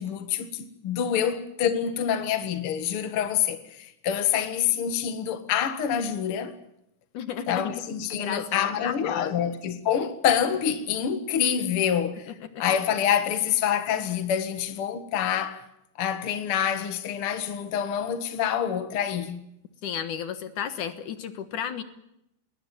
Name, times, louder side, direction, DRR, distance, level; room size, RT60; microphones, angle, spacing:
voice 1, 0.0-6.5 7.5-12.3 12.6-15.6 16.0-19.4, left 9 dB, 85° left, 1.2 m, -26 dB
voice 2, 7.1-7.8 8.1-9.5 12.4-12.6 19.8-21.8, left 8 dB, 65° left, 2.1 m, -33 dB
20.5 x 20.0 x 9.1 m
omnidirectional pair, 5.4 m